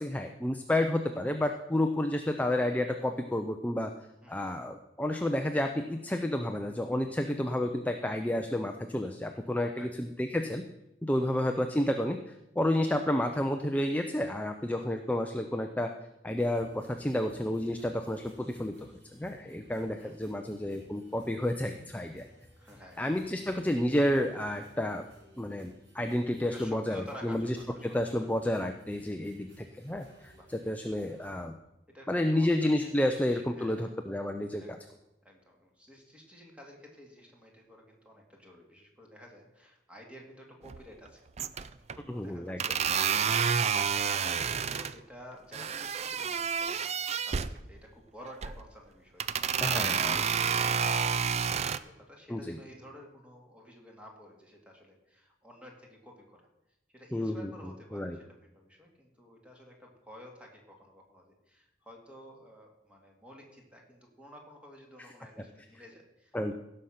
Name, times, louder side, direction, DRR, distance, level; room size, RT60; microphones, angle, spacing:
voice 1, 0.0-3.9 4.3-10.6 11.0-15.9 16.2-18.7 19.2-22.2 23.0-25.0 25.4-27.6 27.8-30.3 30.7-31.5 32.1-34.8 42.0-42.6 49.6-50.3 52.3-52.6 57.1-57.5 57.9-58.2 66.3-66.5, left 1 dB, 10° left, 5 dB, 0.6 m, -30 dB
voice 2, 4.2-4.5 9.8-9.9 11.1-11.2 20.0-20.1 22.6-23.4 26.5-28.3 30.3-30.5 31.9-32.1 32.3-33.9 34.6-34.8 35.2-41.3 41.5-46.8 47.2-56.5 56.9-66.5, equal, 5° right, 0 dB, 2.2 m, -52 dB
sound 1, 16.4-31.3, equal, 80° right, 4.2 m, -59 dB
sound 2, 40.6-41.1 41.4-42.0 42.6-44.9 45.5-47.5 48.2-48.7 49.2-51.8, right 7 dB, 35° right, 0.4 m, -29 dB
16.5 x 6.5 x 5.8 m, 0.91 s
head